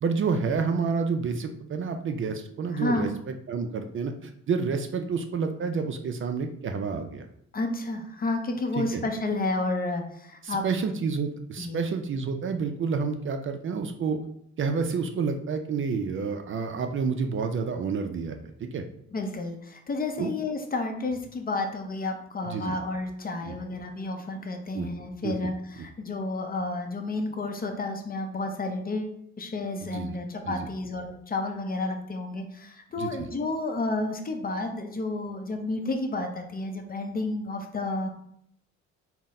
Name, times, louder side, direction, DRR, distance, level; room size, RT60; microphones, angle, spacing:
voice 1, 0.0-7.3 8.8-9.0 10.4-14.2 14.6-18.8 20.2-20.3 22.4-22.8 23.5-23.6 24.7-24.9 25.2-25.4 29.8-30.1 30.5-30.7 33.0-33.3, right 5 dB, 45° right, 6 dB, 0.4 m, -29 dB
voice 2, 2.7-3.2 7.5-10.6 11.6-11.8 19.1-38.1, left 2 dB, 30° left, 5 dB, 0.6 m, -31 dB
3.9 x 2.1 x 4.0 m, 0.69 s
cardioid pair, 90°, 30 cm